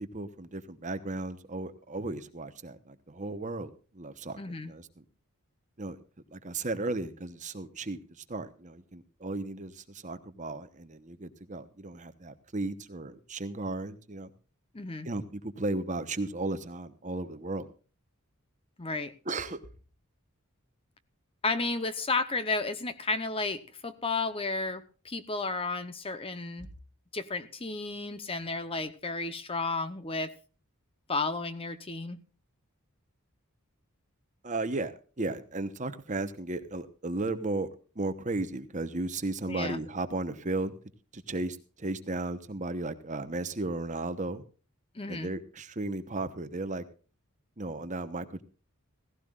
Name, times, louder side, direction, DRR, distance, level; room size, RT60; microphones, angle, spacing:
voice 1, 0.0-4.9 5.8-6.0 6.3-14.3 15.0-17.7 19.3-19.6 34.4-37.7 38.0-40.7 41.1-44.4 45.1-46.8 47.6-48.4, right 2 dB, 35° right, 10 dB, 1.0 m, -35 dB
voice 2, 4.4-4.7 14.7-15.1 18.8-19.1 21.4-26.7 27.1-30.3 31.1-32.2 39.5-39.8 44.9-45.3, left 3 dB, 25° left, 12 dB, 0.9 m, -33 dB
17.0 x 16.0 x 2.5 m, 0.37 s
head